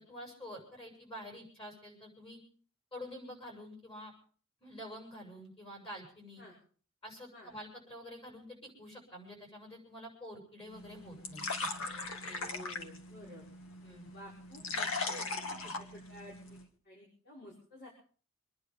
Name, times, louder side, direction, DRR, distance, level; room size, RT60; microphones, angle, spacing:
voice 1, 0.0-2.4 2.9-4.1 4.6-6.4 7.0-11.7 13.8-14.1, equal, 30° left, 0 dB, 7.3 m, -48 dB
sound 1, 10.7-16.7, left 3 dB, 80° left, 2.0 m, -40 dB
voice 2, 12.2-13.4 14.1-16.4 16.8-17.9, left 1 dB, 55° left, -5 dB, 5.9 m, -52 dB
25.5 x 10.5 x 5.3 m, 0.44 s
head